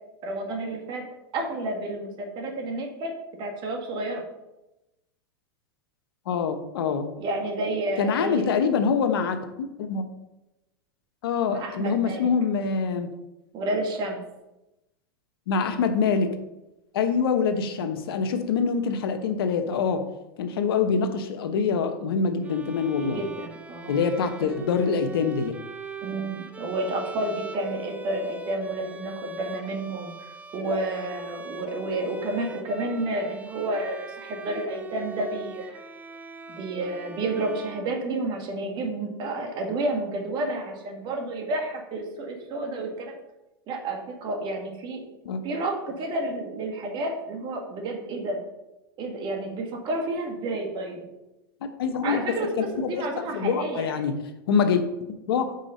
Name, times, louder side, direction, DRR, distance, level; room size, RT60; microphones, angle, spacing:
voice 1, 0.2-1.1 1.3-3.1 3.4-4.2 7.2-8.5 11.5-12.3 13.5-14.2 23.0-24.0 24.4-24.5 26.0-30.1 30.5-35.8 36.5-43.2 43.7-45.0 45.4-48.4 49.0-51.1 52.0-54.0, right 2 dB, 40° right, 3 dB, 1.6 m, -30 dB
voice 2, 6.3-7.1 8.0-10.0 11.2-13.1 15.5-16.4 16.9-20.1 20.4-23.2 23.9-25.5 45.2-45.4 51.8-52.2 52.6-53.0 53.3-54.1 54.5-54.8 55.3-55.6, left 5 dB, 75° left, 8 dB, 0.9 m, -25 dB
Bowed string instrument, 22.4-38.5, right 2 dB, 10° right, 0.5 m, -41 dB
5.3 x 5.0 x 5.3 m, 0.95 s
hypercardioid pair, 120°, 12 cm